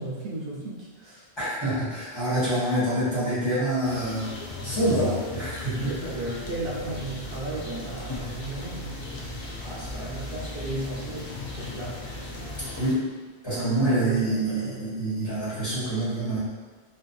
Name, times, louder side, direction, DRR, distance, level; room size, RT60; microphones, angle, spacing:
voice 1, 0.0-1.3 2.3-2.6 4.6-4.8 5.7-8.9 10.0-12.3 13.5-15.1, right 2 dB, 70° right, -5 dB, 0.8 m, -35 dB
voice 2, 1.4-6.1 9.6-10.1 12.8-13.1 13.4-16.4, right 1 dB, 25° left, -13 dB, 1.3 m, -27 dB
sound 1, 3.8-12.9, left 2 dB, 55° left, 0.4 m, -36 dB
2.7 x 2.5 x 2.2 m, 1.4 s
omnidirectional pair, 1.0 m